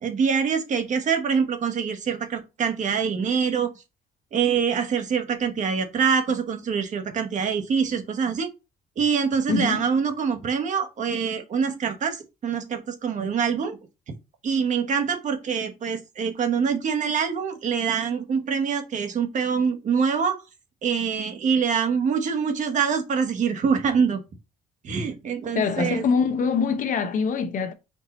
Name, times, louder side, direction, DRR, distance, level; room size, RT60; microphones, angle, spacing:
voice 1, 0.0-3.7 4.3-8.5 9.0-13.8 14.4-20.4 20.8-24.2 24.8-26.0, right 6 dB, 45° right, 1.2 m, -25 dB
voice 2, 9.5-9.9 25.5-27.7, left 5 dB, 50° left, 0.8 m, -24 dB
4.6 x 2.7 x 4.1 m
cardioid pair, 110°, 17 cm